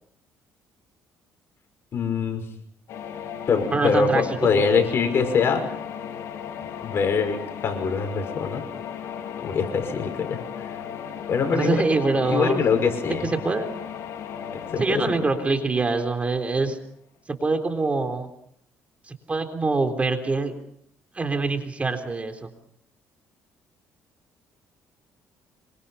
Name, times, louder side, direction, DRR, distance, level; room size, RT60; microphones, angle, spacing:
voice 1, 1.9-2.4 3.5-5.7 6.8-8.6 9.4-10.7 11.3-11.8 12.3-13.3 14.5-15.1, left 5 dB, 50° left, 6 dB, 5.6 m, -24 dB
sound 1, 2.9-16.7, left 8 dB, 70° left, 4.0 m, -36 dB
voice 2, 3.7-4.5 11.5-12.6 13.1-13.7 14.8-16.8 17.3-18.3 19.1-20.6 21.2-22.5, right 3 dB, 25° right, 6 dB, 3.7 m, -24 dB
26.0 x 24.5 x 5.7 m, 0.68 s
cardioid pair, 90°, 5 cm